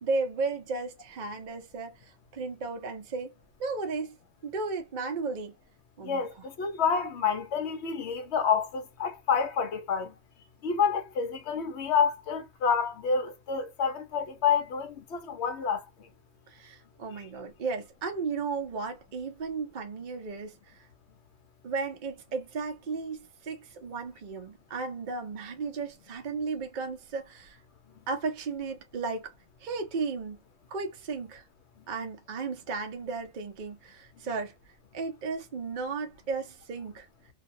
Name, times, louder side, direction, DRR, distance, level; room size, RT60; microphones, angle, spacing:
voice 1, 0.0-3.3 3.6-4.2 4.4-5.5 6.0-6.4 16.5-20.8 21.6-27.6 28.1-29.3 29.6-30.4 30.7-31.4 31.9-34.5 34.9-37.1, right 4 dB, 50° right, 0.6 m, -34 dB
voice 2, 6.0-10.1 10.6-15.8, left 6 dB, 60° left, 0.9 m, -28 dB
2.6 x 2.2 x 2.6 m
omnidirectional pair, 1.5 m